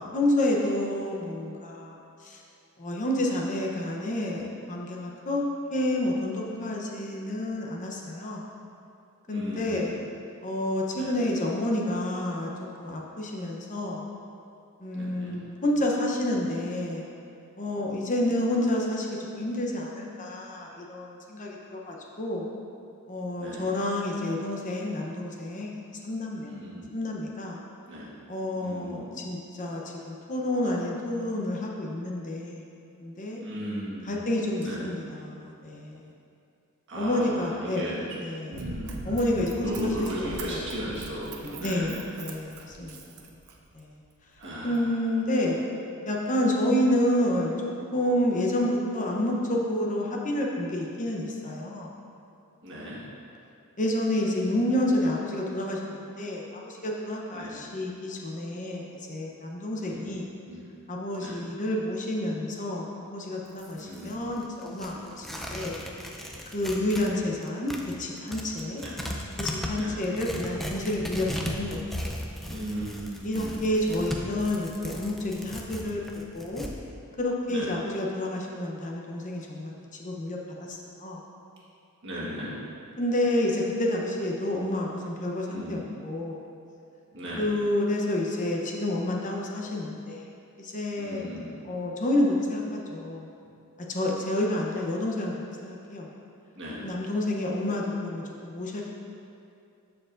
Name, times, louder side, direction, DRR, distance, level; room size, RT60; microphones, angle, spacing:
voice 1, 0.0-2.4 2.8-8.5 9.3-10.0 10.4-12.5 12.8-14.1 14.8-17.1 17.6-22.5 23.1-25.7 26.0-26.5 26.9-27.6 28.3-32.6 33.0-33.4 34.0-36.0 36.9-38.5 39.0-40.6 41.4-43.0 43.7-43.9 44.6-45.6 46.1-51.9 53.8-58.8 59.1-60.3 60.9-65.8 66.5-68.8 69.4-72.1 73.2-76.0 76.3-76.6 77.2-79.7 80.0-81.2 83.0-86.4 87.4-90.3 90.6-91.4 91.6-93.3 93.9-95.3 95.6-96.1 96.8-98.8, left 1 dB, 35° left, -1 dB, 0.8 m, -29 dB
voice 2, 9.3-10.0 10.9-11.1 14.9-15.3 23.4-23.7 26.4-26.9 27.9-28.1 28.6-29.1 33.4-34.2 34.6-34.8 36.9-38.0 38.5-39.1 39.6-42.1 44.4-44.8 52.6-53.0 57.3-57.6 59.8-60.1 60.4-60.6 61.2-61.3 63.8-64.2 68.7-69.0 69.7-69.9 72.5-73.6 77.5-77.7 82.0-82.5 85.5-85.8 87.1-87.5 91.0-91.5 96.6-96.8, equal, 55° right, -7 dB, 1.5 m, -36 dB
Run, 38.5-43.8 44.4-44.5, right 3 dB, 85° right, 0.7 m, -41 dB
Tearing, 63.5-67.1 67.4-76.7, equal, ahead, 0.5 m, -37 dB
13.5 x 4.7 x 2.5 m, 2.6 s
head